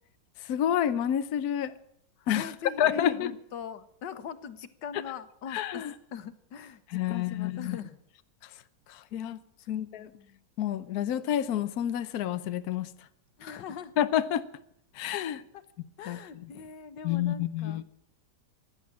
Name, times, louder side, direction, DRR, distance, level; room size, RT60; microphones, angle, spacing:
voice 1, 0.5-1.7 2.3-2.5 2.8-3.3 5.5-5.9 6.9-7.8 9.1-9.4 9.7-10.1 10.6-12.9 14.0-14.4 15.0-15.4 16.1-16.2 17.0-17.9, left 10 dB, 65° left, 11 dB, 1.2 m, -28 dB
voice 2, 2.2-5.8 6.1-8.0 9.6-10.4 13.4-13.9 15.5-15.6 16.0-17.8, left 7 dB, 85° left, 12 dB, 1.7 m, -42 dB
15.5 x 10.5 x 8.7 m, 0.70 s
omnidirectional pair, 1.9 m